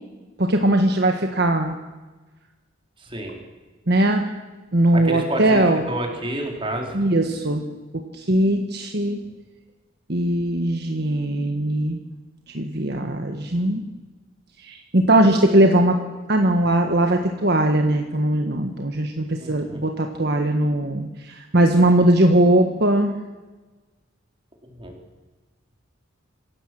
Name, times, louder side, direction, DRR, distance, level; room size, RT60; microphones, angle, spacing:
voice 1, 0.4-1.8 3.9-4.3 4.7-5.9 6.9-7.6 7.9-9.2 10.1-12.0 12.5-13.8 14.6-16.0 16.3-23.1, right 1 dB, 55° right, 4 dB, 1.5 m, -20 dB
voice 2, 3.0-3.4 4.9-7.0 19.4-19.8 24.6-24.9, right 1 dB, 25° right, 1 dB, 4.3 m, -30 dB
26.5 x 16.0 x 7.8 m, 1.2 s
head